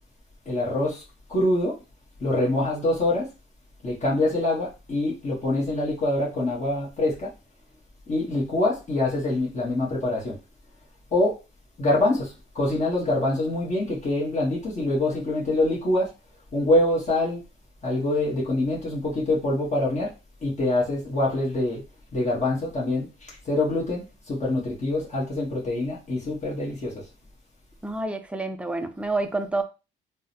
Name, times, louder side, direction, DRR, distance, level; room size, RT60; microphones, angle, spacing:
voice 1, 0.5-1.0 1.3-1.7 2.2-3.3 3.8-7.3 8.1-10.4 11.1-11.3 11.8-16.1 16.5-17.4 17.8-20.1 20.4-21.8 22.1-27.0, left 2 dB, 35° left, 1.2 m, -25 dB
voice 2, 27.8-29.6, right 2 dB, 5° right, 0.4 m, -28 dB
3.5 x 2.1 x 2.8 m
cardioid pair, 90°, 20 cm